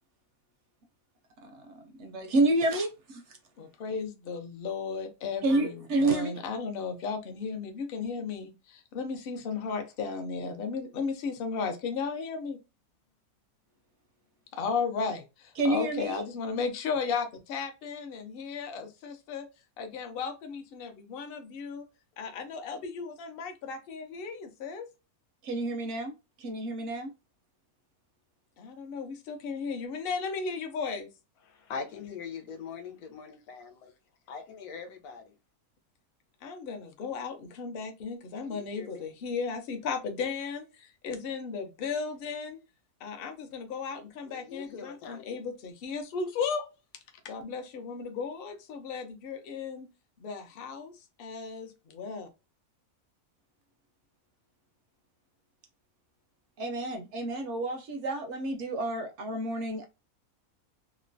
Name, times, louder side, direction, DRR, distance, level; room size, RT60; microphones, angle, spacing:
voice 1, 1.4-3.4 5.4-6.3 15.6-16.2 25.4-27.1 56.6-59.8, right 2 dB, 65° right, 0.7 m, -29 dB
voice 2, 3.6-12.6 14.5-19.5 19.8-21.9 22.2-24.9 28.6-31.1 36.4-42.6 43.0-46.7 47.2-49.9 50.2-52.3, left 5 dB, 60° left, 0.6 m, -35 dB
voice 3, 31.5-33.9 34.3-35.3 38.4-39.1 44.2-45.4, left 6 dB, 85° left, 1.2 m, -42 dB
2.9 x 2.1 x 2.5 m
omnidirectional pair, 1.5 m